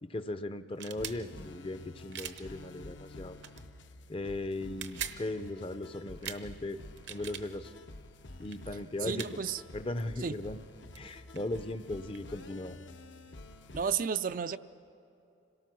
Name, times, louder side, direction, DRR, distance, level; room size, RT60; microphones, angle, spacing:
voice 1, 0.0-3.4 4.1-6.8 7.1-7.7 8.4-9.4 9.7-10.6 11.0-12.8, left 2 dB, 30° left, 12 dB, 0.5 m, -38 dB
sound 1, 0.7-1.2 2.1-2.4 3.4-3.6 4.6-5.2 6.2-6.4 6.9-7.5 8.4-8.6 9.2-9.3 10.7-10.8 11.0-12.3, right 9 dB, 65° right, 0.9 m, -41 dB
sound 2, 1.0-13.9, left 2 dB, 75° left, 0.9 m, -49 dB
voice 2, 9.1-9.6 10.2-10.3 13.7-14.6, right 6 dB, 45° right, 12 dB, 0.4 m, -32 dB
26.5 x 18.0 x 6.2 m, 2.8 s
head